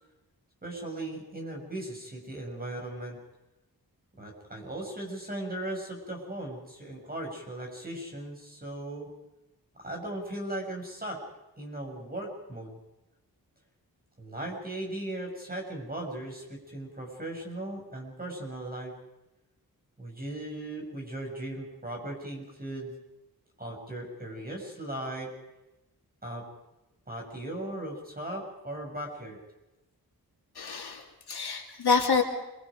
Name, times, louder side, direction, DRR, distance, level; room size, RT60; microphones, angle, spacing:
voice 1, 0.6-3.2 4.2-9.1 9.8-11.2 11.6-12.7 14.2-18.9 20.0-22.9 23.6-25.3 26.2-26.5 27.1-29.4, right 1 dB, 25° right, 1 dB, 7.0 m, -37 dB
voice 2, 30.6-32.2, left 5 dB, 85° left, 2 dB, 2.9 m, -27 dB
28.5 x 24.0 x 5.2 m, 0.95 s
wide cardioid pair, 125°, 38 cm